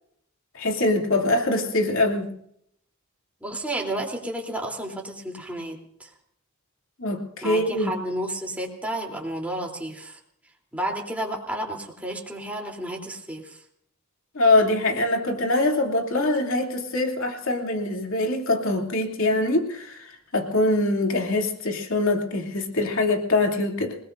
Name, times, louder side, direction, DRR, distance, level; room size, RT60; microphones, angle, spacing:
voice 1, 0.5-2.3 7.0-8.0 14.3-24.0, left 2 dB, 70° left, 2 dB, 2.9 m, -23 dB
voice 2, 3.4-6.1 7.4-10.2 10.7-13.6, right 1 dB, 5° right, -1 dB, 3.3 m, -31 dB
28.0 x 19.0 x 2.6 m, 0.69 s
head